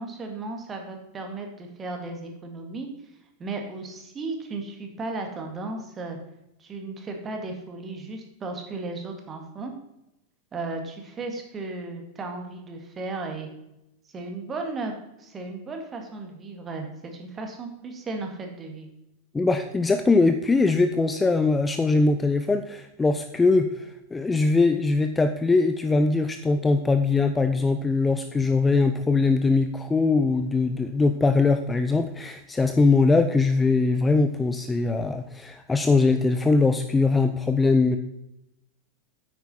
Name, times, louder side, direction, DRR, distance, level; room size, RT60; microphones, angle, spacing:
voice 1, 0.0-2.9 3.4-6.2 6.6-9.7 10.5-13.5 14.1-14.9 15.2-18.9, right 3 dB, 20° right, 3 dB, 2.1 m, -35 dB
voice 2, 19.3-38.0, left 3 dB, 10° left, 8 dB, 0.5 m, -21 dB
9.3 x 9.0 x 4.3 m, 0.87 s
figure-of-eight pair, 90°, 0 cm